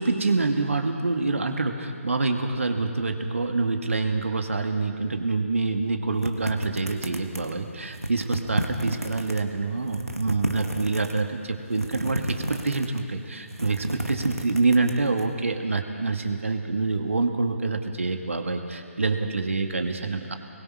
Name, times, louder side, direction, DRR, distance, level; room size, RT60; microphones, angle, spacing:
voice 1, 0.0-20.4, right 3 dB, 65° right, 4 dB, 2.0 m, -26 dB
sound 1, 6.2-7.6 7.9-9.4 9.8-11.2 11.7-13.1 13.4-15.2, right 1 dB, 90° right, 2.0 m, -31 dB
24.5 x 22.0 x 5.0 m, 2.2 s
figure-of-eight pair, 145°, 8 cm